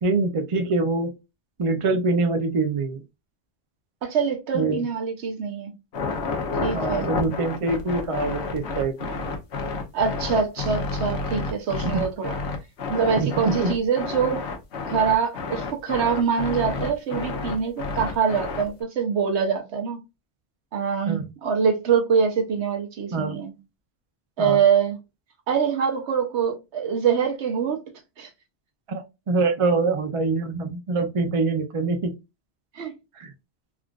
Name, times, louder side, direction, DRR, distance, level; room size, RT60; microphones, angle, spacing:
voice 1, 0.0-1.1 1.6-3.0 4.5-4.8 6.7-9.1 11.8-12.1 13.2-13.7 21.1-21.3 23.1-23.4 24.4-24.6 28.9-32.1 33.2-33.3, right 3 dB, 45° right, 0.4 m, -25 dB
voice 2, 4.0-5.7 6.6-7.1 9.9-12.4 12.9-14.4 14.9-20.0 20.7-23.5 24.4-25.0 25.5-27.8 28.2-28.3 32.7-33.0, right 6 dB, 70° right, 1.1 m, -24 dB
sound 1, 5.9-18.8, left 3 dB, 70° left, 1.1 m, -30 dB
3.5 x 2.4 x 2.3 m
omnidirectional pair, 1.2 m